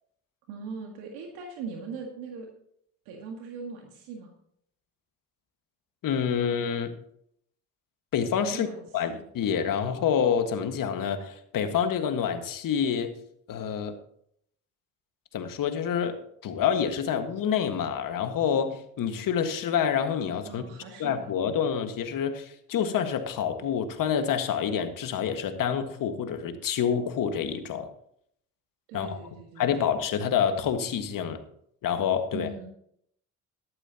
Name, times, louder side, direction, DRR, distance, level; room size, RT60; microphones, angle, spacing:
voice 1, 0.5-2.5 3.1-4.3 8.5-9.2 20.5-21.4 28.9-29.9 32.3-32.7, right 4 dB, 85° right, 1 dB, 1.9 m, -40 dB
voice 2, 6.0-6.9 8.1-8.7 8.9-13.1 13.5-13.9 15.3-20.6 21.0-27.9 28.9-29.2 29.6-31.4 31.8-32.5, left 8 dB, 65° left, 7 dB, 1.7 m, -27 dB
14.0 x 12.0 x 2.9 m, 0.69 s
supercardioid pair, 70°, 36 cm